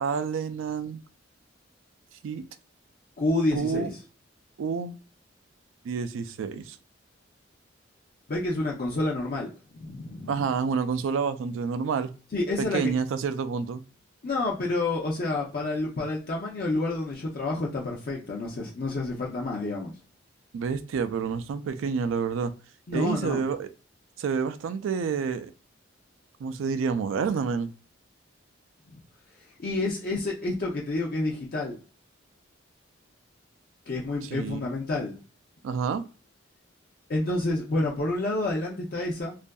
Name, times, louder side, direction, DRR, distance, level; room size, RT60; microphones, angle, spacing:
voice 1, 0.0-1.0 2.2-2.5 3.5-3.9 4.6-5.0 5.8-6.8 10.3-12.1 12.6-13.8 20.5-22.5 22.9-23.7 24.2-25.5 26.4-27.7 34.3-34.6 35.6-36.0, right 5 dB, 80° right, 11 dB, 0.3 m, -28 dB
voice 2, 3.2-3.9 8.3-10.4 12.3-12.9 14.2-19.9 22.9-23.4 28.9-29.0 29.6-31.8 33.9-35.2 37.1-39.4, left 2 dB, 50° left, -2 dB, 0.5 m, -29 dB
2.6 x 2.3 x 2.2 m, 0.36 s
head